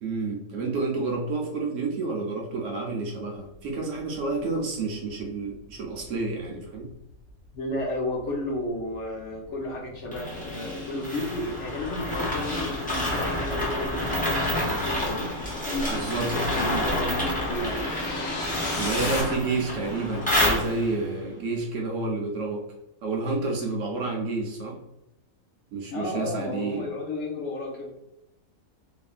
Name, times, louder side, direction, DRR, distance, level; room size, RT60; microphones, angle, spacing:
voice 1, 0.0-6.9 15.9-16.3 18.7-22.6 23.0-24.8 25.7-26.9, right 3 dB, 70° right, -1 dB, 0.8 m, -29 dB
sound 1, 5.2-19.2, left 2 dB, 75° left, 1.2 m, -39 dB
voice 2, 7.5-15.3 16.2-17.9 25.9-27.9, left 1 dB, 60° left, -1 dB, 0.9 m, -32 dB
sound 2, 10.1-21.1, left 1 dB, 10° left, 0.5 m, -29 dB
2.9 x 2.5 x 2.3 m, 0.88 s
omnidirectional pair, 1.6 m